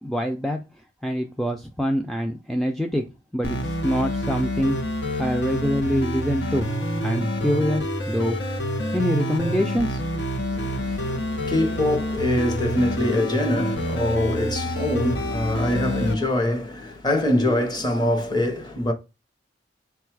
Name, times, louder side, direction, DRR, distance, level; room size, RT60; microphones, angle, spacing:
voice 1, 0.0-0.6 1.0-3.0 3.3-4.8 5.2-6.7 7.0-8.4 8.9-10.0, equal, ahead, 0.3 m, -25 dB
sound 1, 3.4-16.1, equal, 75° left, 0.8 m, -27 dB
voice 2, 10.5-18.9, left 1 dB, 25° left, 0.8 m, -24 dB
3.9 x 2.3 x 4.5 m
head